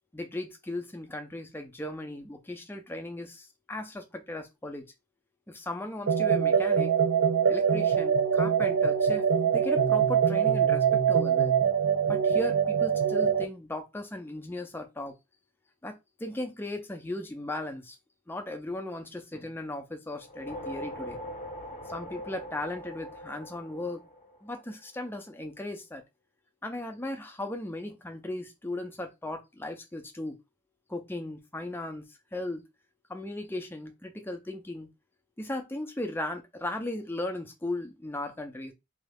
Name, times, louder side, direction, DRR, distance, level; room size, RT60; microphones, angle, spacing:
voice 1, 0.1-4.9 5.5-6.9 7.5-11.5 12.1-15.2 15.8-18.0 18.3-21.2 21.9-24.0 24.4-26.0 26.6-30.4 30.9-32.6 33.1-34.9 35.4-38.7, left 1 dB, 10° left, 0.5 m, -37 dB
sound 1, 6.1-13.4, right 7 dB, 65° right, 0.4 m, -24 dB
sound 2, 20.2-24.7, equal, 35° left, 0.8 m, -41 dB
3.1 x 2.3 x 3.4 m
head